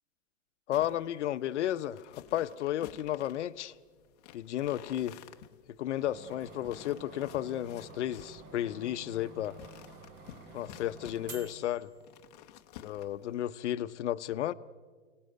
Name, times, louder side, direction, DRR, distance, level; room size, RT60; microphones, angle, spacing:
voice 1, 0.7-3.7 4.3-5.2 5.7-9.6 10.5-11.9 12.8-14.5, left 12 dB, 60° left, 0.9 m, -33 dB
sound 1, 0.7-13.5, left 12 dB, 30° left, 0.9 m, -54 dB
sound 2, 6.0-12.5, right 3 dB, 30° right, 1.8 m, -51 dB
29.0 x 18.5 x 8.0 m
supercardioid pair, 170°, 39 cm